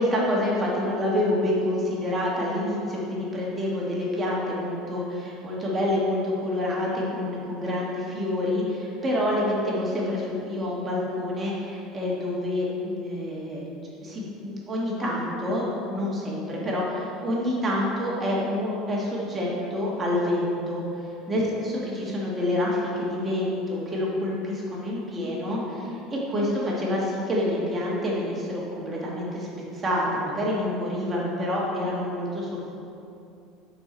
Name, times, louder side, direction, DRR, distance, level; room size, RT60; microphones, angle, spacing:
voice 1, 0.0-13.7 14.0-20.8 21.3-29.5 29.8-32.7, left 1 dB, 20° right, -4 dB, 1.4 m, -27 dB
5.9 x 4.4 x 5.1 m, 2.6 s
cardioid pair, 135°, 0 cm